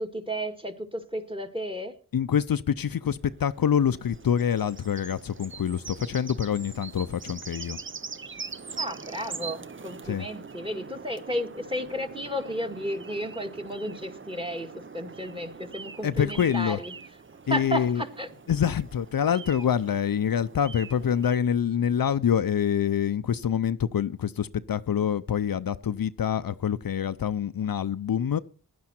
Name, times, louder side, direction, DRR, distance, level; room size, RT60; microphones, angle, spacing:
voice 1, 0.0-1.9 8.8-16.9 17.5-18.3, equal, 15° right, 2.0 m, -33 dB
voice 2, 2.1-7.8 10.0-10.3 16.0-16.8 17.5-18.0 18.5-28.4, left 8 dB, 70° left, 0.6 m, -26 dB
sound 1, 3.2-21.4, right 5 dB, 35° right, 0.7 m, -43 dB
15.5 x 11.0 x 4.4 m
wide cardioid pair, 65°, 36 cm